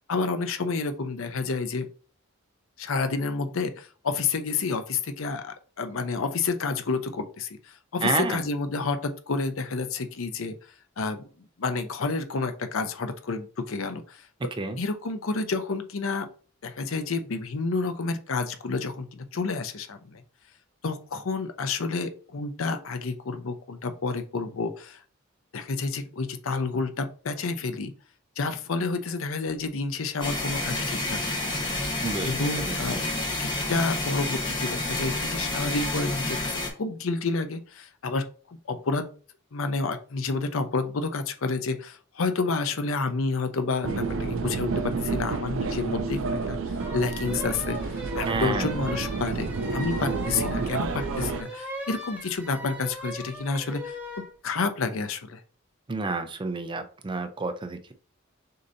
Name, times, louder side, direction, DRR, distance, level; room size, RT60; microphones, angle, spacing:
voice 1, 0.1-1.9 2.8-10.5 11.0-11.2 11.6-14.2 14.8-16.3 16.6-20.2 20.8-25.0 25.5-27.9 28.4-31.8 32.2-33.0 33.4-38.2 38.7-39.1 39.5-54.0 54.4-55.4, left 4 dB, 80° left, 8 dB, 0.6 m, -29 dB
voice 2, 8.0-8.5 14.6-14.8 32.0-32.3 32.6-33.1 48.2-48.7 55.9-57.9, right 3 dB, 25° right, 8 dB, 0.5 m, -30 dB
sound 1, 30.2-36.7, left 2 dB, 25° left, 1.0 m, -29 dB
sound 2, 43.8-51.4, right 4 dB, 75° right, 0.5 m, -30 dB
sound 3, 46.8-54.3, equal, 10° right, 0.9 m, -39 dB
6.5 x 2.8 x 2.6 m, 0.40 s
head